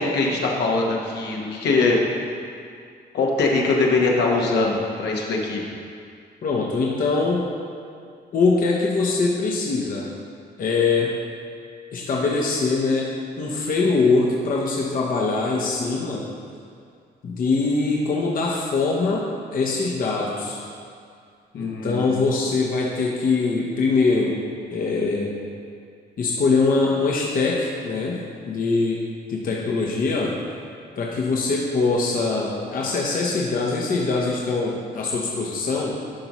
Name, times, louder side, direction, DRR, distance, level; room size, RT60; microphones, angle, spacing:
voice 1, 0.0-2.0 3.1-5.6 21.5-22.2, left 3 dB, 75° left, -2 dB, 1.2 m, -22 dB
voice 2, 6.4-7.5 8.3-10.1 10.6-11.2 11.9-16.3 17.2-20.6 21.5-24.4 24.7-25.4 26.2-29.0 29.3-30.4 31.0-36.0, left 3 dB, 50° left, -3 dB, 0.9 m, -23 dB
11.5 x 5.2 x 3.0 m, 2.3 s
cardioid pair, 100°, 18 cm